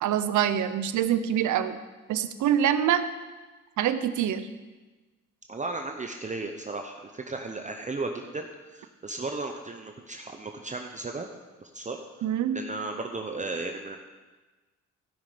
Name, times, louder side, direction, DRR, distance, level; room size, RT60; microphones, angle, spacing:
voice 1, 0.0-1.8 2.1-3.0 3.8-4.5 12.2-12.6, right 10 dB, 75° right, 11 dB, 0.8 m, -25 dB
voice 2, 5.5-11.3 11.6-12.0 12.5-14.0, right 3 dB, 25° right, 4 dB, 0.8 m, -35 dB
15.5 x 5.9 x 5.0 m, 1.2 s
cardioid pair, 90°, 30 cm